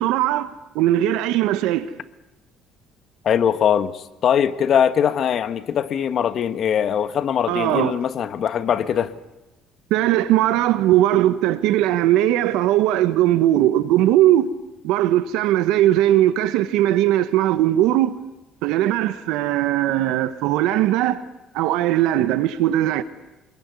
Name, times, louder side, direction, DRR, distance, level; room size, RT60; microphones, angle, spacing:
voice 1, 0.0-1.9 7.5-8.0 9.9-14.5 14.8-18.2 18.6-21.2 21.5-23.0, right 13 dB, 90° right, 1.2 m, -19 dB
voice 2, 3.2-9.1, left 8 dB, 50° left, 1.4 m, -21 dB
27.0 x 21.5 x 9.7 m
cardioid pair, 125°, 0 cm